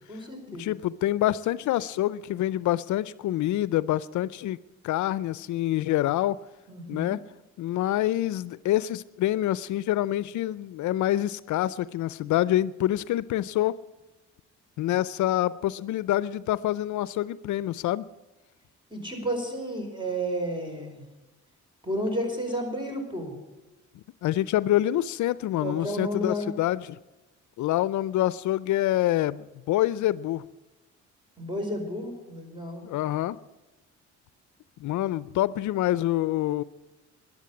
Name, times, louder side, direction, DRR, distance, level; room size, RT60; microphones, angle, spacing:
voice 1, 0.1-0.7 6.7-7.2 18.9-21.0 21.8-23.3 25.6-26.5 31.4-32.9, equal, 15° right, 4 dB, 4.9 m, -32 dB
voice 2, 0.6-4.6 4.8-6.4 6.9-7.2 7.6-13.8 14.8-18.0 24.2-27.0 27.6-30.4 32.8-33.4 34.8-36.6, left 14 dB, 75° left, 18 dB, 0.5 m, -26 dB
13.5 x 11.0 x 8.4 m, 1.0 s
cardioid pair, 90°, 30 cm